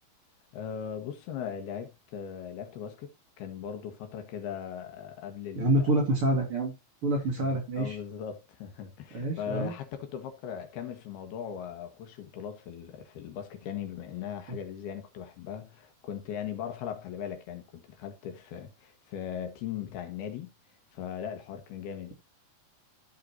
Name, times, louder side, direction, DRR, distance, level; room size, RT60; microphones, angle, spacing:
voice 1, 0.5-3.1 3.4-5.9 7.4-20.5 20.9-22.1, left 8 dB, 80° left, 3.4 m, -39 dB
voice 2, 5.6-6.7 7.0-8.0 9.1-9.7, right 1 dB, 40° right, 2.5 m, -27 dB
14.5 x 5.7 x 2.7 m
omnidirectional pair, 4.4 m